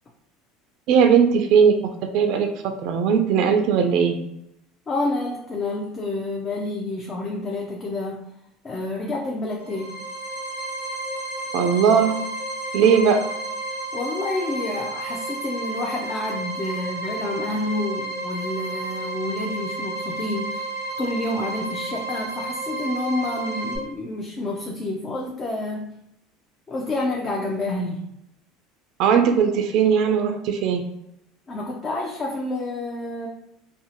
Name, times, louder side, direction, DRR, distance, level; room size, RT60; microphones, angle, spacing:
voice 1, 0.9-1.7 2.1-2.5 2.8-4.2 11.5-12.2 12.7-13.2 29.0-30.8, right 7 dB, 65° right, 6 dB, 0.3 m, -18 dB
voice 2, 4.9-8.2 8.6-10.0 13.9-20.7 21.0-26.0 26.7-28.1 31.5-33.3, left 2 dB, 30° left, -1 dB, 0.4 m, -29 dB
sound 1, 9.6-23.8, right 2 dB, 75° left, 0.7 m, -31 dB
2.7 x 2.0 x 2.8 m, 0.81 s
supercardioid pair, 105°, 0 cm